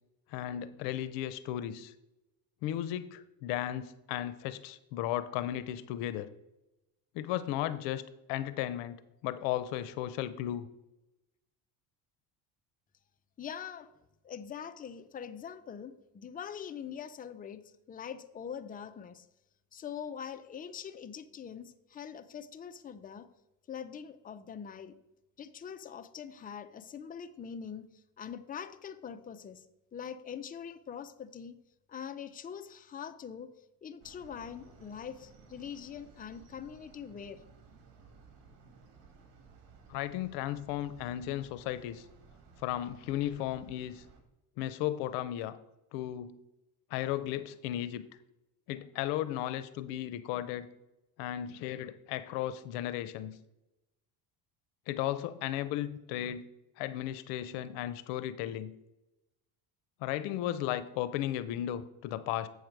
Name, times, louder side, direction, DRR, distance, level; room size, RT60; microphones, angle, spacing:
voice 1, 0.3-1.9 2.6-6.3 7.1-8.0 8.3-10.7 39.9-42.0 42.6-44.0 44.6-45.6 45.9-46.4 46.9-48.0 48.7-50.7 51.2-53.3 54.9-56.4 56.8-58.7 60.0-62.5, left 12 dB, 90° left, 14 dB, 0.6 m, -35 dB
voice 2, 13.4-13.9 14.2-19.3 19.7-23.3 23.7-25.0 25.4-29.7 29.9-31.5 31.9-33.5 33.8-37.4, left 7 dB, 20° left, 10 dB, 0.5 m, -43 dB
sound 1, 34.0-44.2, right 4 dB, 70° right, 2.0 m, -57 dB
8.1 x 6.6 x 4.6 m, 0.94 s
cardioid pair, 110°, 42 cm